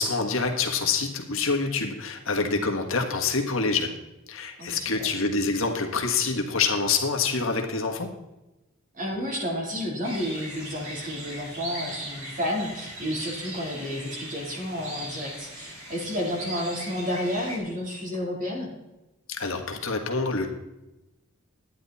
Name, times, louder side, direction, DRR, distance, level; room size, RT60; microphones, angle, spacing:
voice 1, 0.0-3.9 4.3-8.1 19.3-20.5, left 4 dB, 65° left, 3 dB, 1.6 m, -26 dB
voice 2, 4.6-4.9 8.9-18.7, equal, 35° right, -1 dB, 3.6 m, -31 dB
sound 1, 10.0-17.6, right 1 dB, 75° right, 4.3 m, -39 dB
11.5 x 9.8 x 4.2 m, 0.98 s
head